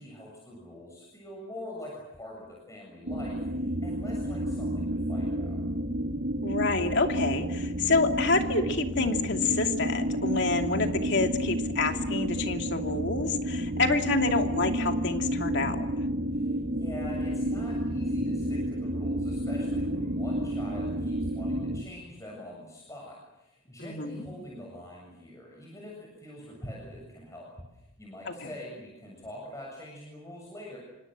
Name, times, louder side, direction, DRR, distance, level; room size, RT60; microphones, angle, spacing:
voice 1, 0.0-5.6 16.3-30.8, left 1 dB, 15° left, -3 dB, 7.2 m, -44 dB
sound 1, 3.1-21.8, equal, 60° right, 2.0 m, -30 dB
voice 2, 6.4-15.9 23.9-24.2, left 3 dB, 55° left, 4 dB, 2.7 m, -28 dB
27.5 x 25.0 x 7.7 m, 0.99 s
head